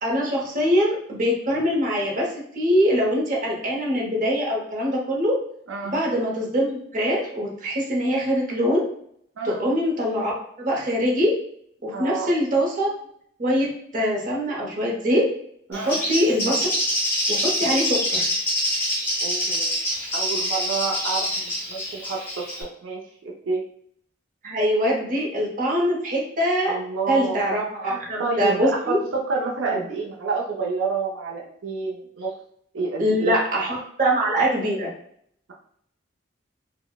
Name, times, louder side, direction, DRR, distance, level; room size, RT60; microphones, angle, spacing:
voice 1, 0.0-2.3 2.6-5.3 5.8-8.8 9.4-11.3 11.8-12.9 13.4-13.7 13.9-15.2 15.7-16.7 17.3-18.3 24.4-26.8 27.1-29.0 29.7-29.8 33.0-34.9, equal, 40° right, -2 dB, 0.7 m, -23 dB
voice 2, 11.9-12.3 15.7-15.9 19.2-19.8 20.1-22.4 22.8-23.0 23.5-23.6 26.6-27.4 27.8-32.3 32.7-33.3, right 4 dB, 80° right, -2 dB, 0.5 m, -28 dB
Bird, 15.7-22.6, equal, 10° left, 0.7 m, -25 dB
3.9 x 2.0 x 2.2 m, 0.68 s
head